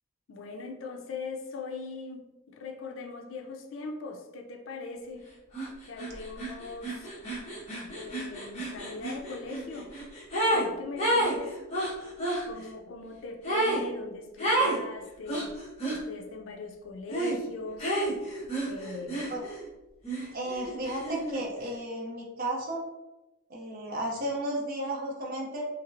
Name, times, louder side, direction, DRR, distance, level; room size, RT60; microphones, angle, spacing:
voice 1, 0.3-5.3 5.8-7.1 7.9-9.9 10.5-11.6 12.4-15.5 15.9-17.9 18.6-19.4, left 3 dB, 75° left, 3 dB, 0.5 m, -40 dB
sound 1, 5.5-5.7 6.0-10.7 11.0-12.4 13.4-13.8 14.4-14.8 15.3-16.0 17.1-17.4 17.8-19.6 20.0-21.4, right 1 dB, 35° left, 1.2 m, -30 dB
voice 2, 20.3-22.8 23.5-25.6, right 1 dB, 45° right, -1 dB, 0.7 m, -33 dB
3.0 x 2.8 x 2.5 m, 1.0 s
head